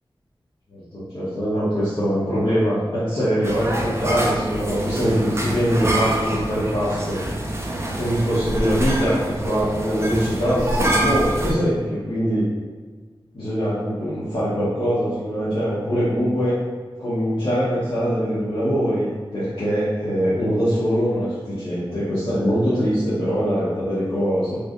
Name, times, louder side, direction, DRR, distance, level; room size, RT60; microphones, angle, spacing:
voice 1, 0.7-7.2 7.9-12.5 13.3-16.6 17.0-19.1 19.3-24.6, equal, 65° left, -12 dB, 1.0 m, -22 dB
sound 1, 3.4-11.5, right 1 dB, 30° right, 0.4 m, -25 dB
3.2 x 3.1 x 2.5 m, 1.4 s
wide cardioid pair, 80°, 9 cm